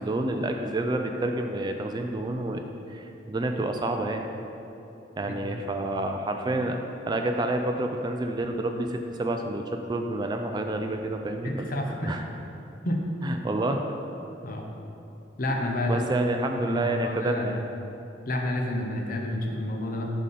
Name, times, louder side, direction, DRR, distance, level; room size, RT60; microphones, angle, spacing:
voice 1, 0.0-2.6 2.9-4.3 5.2-6.8 7.1-9.6 9.9-12.2 13.2-13.8 15.9-17.6, right 2 dB, 25° right, 4 dB, 0.3 m, -29 dB
voice 2, 11.4-12.2 12.8-13.1 14.4-14.7 15.4-16.1 16.7-17.5 18.3-20.1, left 1 dB, 50° left, 2 dB, 0.7 m, -29 dB
10.5 x 3.7 x 4.2 m, 2.8 s
head